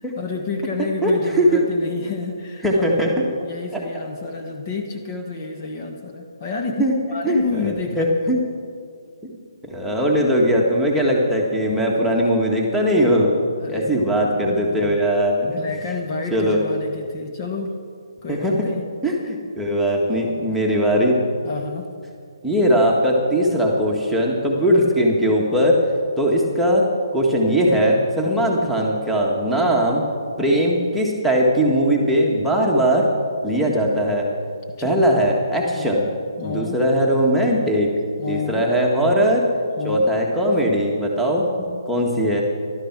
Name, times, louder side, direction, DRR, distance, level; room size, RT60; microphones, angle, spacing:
voice 1, 0.0-3.0 3.5-8.1 13.6-14.2 14.8-15.0 15.4-17.8 18.2-18.8 21.4-21.9 28.3-28.4 34.8-35.0 35.7-35.9 36.4-36.8 38.2-38.7 39.8-40.1, left 4 dB, 35° left, 3 dB, 1.4 m, -29 dB
voice 2, 1.0-1.6 2.6-3.1 3.7-3.8 6.8-7.0 7.2-8.4 9.2-9.4 9.6-13.3 13.7-15.6 16.3-16.6 18.3-18.7 19.0-21.2 22.4-25.8 26.2-26.9 27.1-30.0 30.4-33.1 33.4-34.3 34.8-36.1 36.4-37.9 38.3-39.5 39.8-42.4, equal, ahead, -4 dB, 1.7 m, -19 dB
14.0 x 12.5 x 6.1 m, 2.3 s
hypercardioid pair, 150°, 3 cm